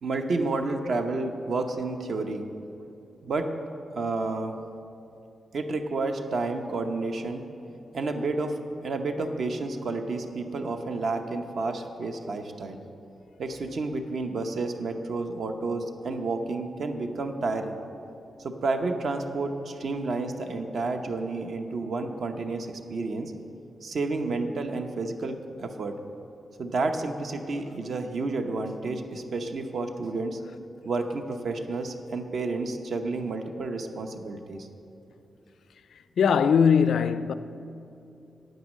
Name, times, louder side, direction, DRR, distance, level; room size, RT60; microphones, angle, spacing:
voice 1, 0.0-2.5 3.2-3.5 3.9-4.6 5.5-7.4 7.9-12.8 13.4-17.8 18.4-23.3 23.8-26.0 26.6-30.4 30.8-34.7, right 3 dB, 60° right, 0.8 m, -30 dB
voice 2, 36.2-37.3, left 7 dB, 90° left, 0.4 m, -20 dB
9.3 x 9.2 x 6.3 m
wide cardioid pair, 155°, 0 cm